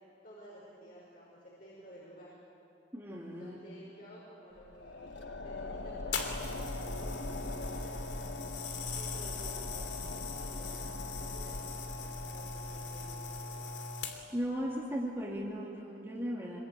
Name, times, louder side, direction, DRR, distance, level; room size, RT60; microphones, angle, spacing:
voice 1, 0.2-2.3 3.4-8.3 8.9-13.7, equal, 45° left, -5 dB, 5.5 m, -53 dB
voice 2, 2.9-3.6 14.3-16.6, equal, 15° right, -6 dB, 2.6 m, -36 dB
sound 1, 4.6-13.9, left 2 dB, 85° left, 1.3 m, -42 dB
sound 2, 6.1-14.4 15.2-15.4, left 4 dB, 70° left, 2.9 m, -40 dB
26.5 x 22.5 x 9.2 m, 2.9 s
head